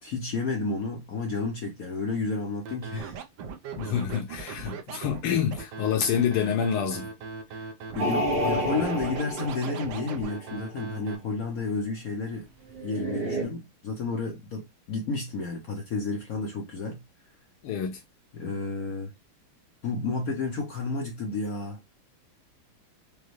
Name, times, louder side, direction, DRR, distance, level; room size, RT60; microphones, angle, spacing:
voice 1, 0.0-3.2 7.5-7.7 7.9-12.5 12.8-17.0 18.3-19.1 19.8-21.8, left 3 dB, 65° left, 0.9 m, -31 dB
Scratching (performance technique), 2.6-11.1, right 5 dB, 70° right, 1.3 m, -38 dB
voice 2, 3.8-7.1 17.6-18.0, left 8 dB, 90° left, 1.7 m, -27 dB
sound 1, 8.0-10.6 12.7-13.4, equal, 35° right, 1.1 m, -30 dB
5.2 x 2.2 x 3.0 m
omnidirectional pair, 2.3 m